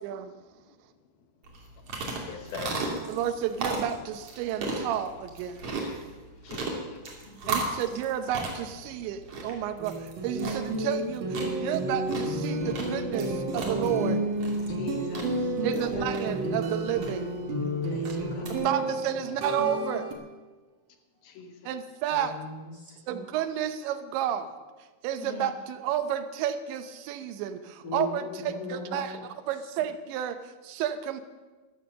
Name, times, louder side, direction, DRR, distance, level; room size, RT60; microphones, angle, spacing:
voice 1, 0.0-0.3 3.1-5.7 7.5-14.2 15.6-17.4 18.6-20.1 21.7-22.4 23.1-24.6 25.0-29.2 29.5-31.2, right 10 dB, 80° right, 10 dB, 3.1 m, -31 dB
sound 1, 1.4-18.5, right 3 dB, 40° right, 2.7 m, -37 dB
voice 2, 2.1-3.1 5.8-5.9 6.4-7.0 14.7-16.1 17.8-18.7 21.2-21.7 25.2-25.5, left 5 dB, 70° left, 5 dB, 2.6 m, -42 dB
voice 3, 7.1-7.8 11.0-11.1 17.9-18.9 19.2-19.4 22.1-23.2 27.8-29.1, left 4 dB, 35° left, -1 dB, 1.7 m, -40 dB
sound 2, 9.8-20.1, right 1 dB, 60° right, 2.5 m, -31 dB
14.0 x 13.5 x 6.5 m, 1.3 s
omnidirectional pair, 5.4 m